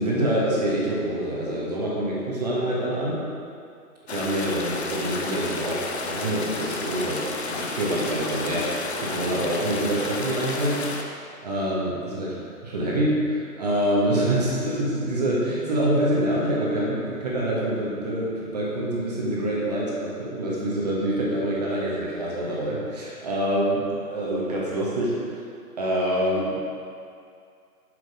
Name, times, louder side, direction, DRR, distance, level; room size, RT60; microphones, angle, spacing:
voice 1, 0.0-3.2 4.1-10.8 11.4-12.3 12.6-25.2 25.8-26.6, right 1 dB, 25° right, -5 dB, 1.3 m, -26 dB
sound 1, 4.1-11.0, left 3 dB, 45° left, 0.8 m, -31 dB
8.4 x 6.7 x 5.1 m, 2.3 s
figure-of-eight pair, 155°, 48 cm